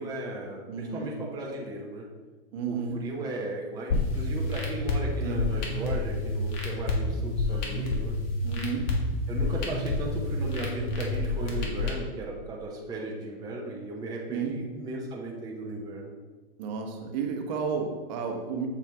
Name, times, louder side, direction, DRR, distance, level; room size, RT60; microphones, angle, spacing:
voice 1, 0.0-2.0 2.7-8.2 9.3-16.1, right 2 dB, 15° right, -3 dB, 0.8 m, -36 dB
voice 2, 0.7-1.1 2.5-3.0 5.2-5.5 8.4-8.9 14.3-14.6 16.6-18.7, right 5 dB, 50° right, 3 dB, 1.1 m, -32 dB
sound 1, 3.9-11.9, left 2 dB, 50° left, 1.6 m, -29 dB
7.0 x 4.5 x 3.5 m, 1.3 s
hypercardioid pair, 135°, 29 cm